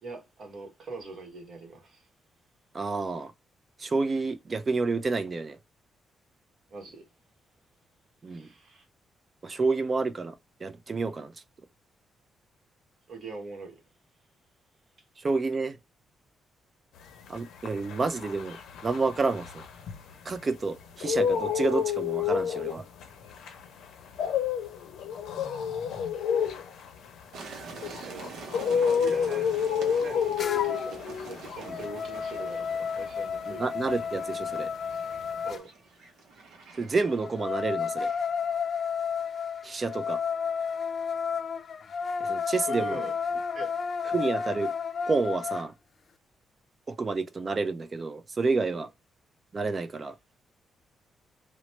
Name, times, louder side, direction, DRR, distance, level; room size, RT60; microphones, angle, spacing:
voice 1, 0.0-2.1 6.7-7.0 8.3-8.8 13.1-13.8 28.0-28.4 28.6-33.7 35.4-35.7 42.6-43.1 43.5-43.7 48.7-48.8, right 3 dB, 55° right, 1.1 m, -42 dB
voice 2, 2.7-3.3 3.8-5.6 8.2-8.5 9.4-10.4 10.6-11.3 15.2-15.8 17.3-18.6 18.8-19.6 20.3-22.8 31.7-31.8 33.5-34.7 36.7-38.1 39.6-40.2 42.2-43.0 44.1-44.7 45.1-45.7 46.9-48.9 49.5-50.2, right 3 dB, 30° right, 0.4 m, -29 dB
sound 1, 17.2-20.5 20.8-34.2 34.5-35.6, left 7 dB, 90° left, 0.6 m, -30 dB
sound 2, 27.3-38.5, right 4 dB, 85° right, 0.6 m, -46 dB
sound 3, 30.4-31.0 31.4-35.6 37.1-45.7, left 6 dB, 45° left, 0.3 m, -32 dB
3.0 x 2.0 x 3.0 m
cardioid pair, 130°, 0 cm